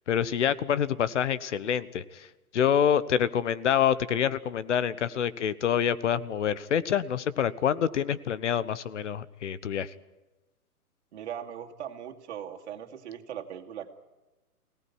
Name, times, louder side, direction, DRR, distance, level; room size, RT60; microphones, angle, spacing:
voice 1, 0.1-9.9, left 9 dB, 50° left, 17 dB, 1.2 m, -27 dB
voice 2, 11.1-14.0, right 9 dB, 45° right, 3 dB, 2.6 m, -39 dB
24.0 x 18.0 x 9.9 m, 1.1 s
hypercardioid pair, 145°, 46 cm